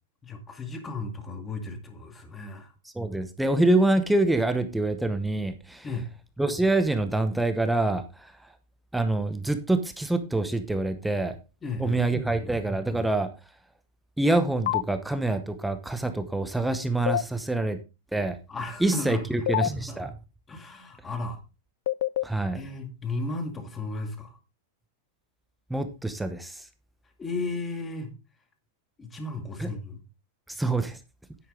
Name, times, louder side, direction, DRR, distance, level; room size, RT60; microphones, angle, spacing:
voice 1, 0.2-2.7 5.8-6.1 11.6-12.0 12.4-12.5 18.5-19.5 19.7-20.0 20.5-21.4 22.5-24.4 27.2-28.1 29.0-30.0, left 3 dB, 15° left, 6 dB, 2.1 m, -35 dB
voice 2, 2.9-5.9 6.4-8.5 8.9-11.4 11.8-13.3 14.2-17.8 18.1-18.4 18.8-20.1 22.2-22.6 25.7-26.7 29.6-29.7 30.5-31.0, right 2 dB, 5° right, 8 dB, 0.9 m, -26 dB
sound 1, 14.7-14.8 17.1-17.2 19.5-19.7 21.9-22.2, left 14 dB, 65° left, 0.4 m, -24 dB
9.9 x 8.7 x 3.7 m, 0.29 s
supercardioid pair, 150°, 0 cm